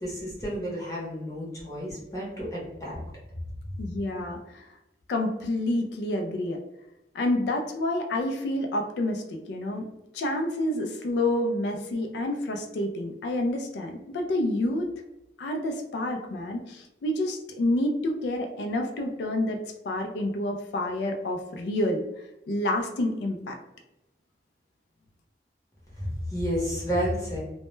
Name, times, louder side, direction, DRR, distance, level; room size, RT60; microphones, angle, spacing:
voice 1, 0.0-3.0 26.0-27.4, equal, 20° left, -5 dB, 0.8 m, -31 dB
voice 2, 3.8-4.7 5.1-6.6 7.1-9.8 10.1-14.9 15.4-22.0 22.5-23.6, left 1 dB, 70° left, 3 dB, 0.3 m, -28 dB
2.1 x 2.1 x 3.0 m, 0.92 s
head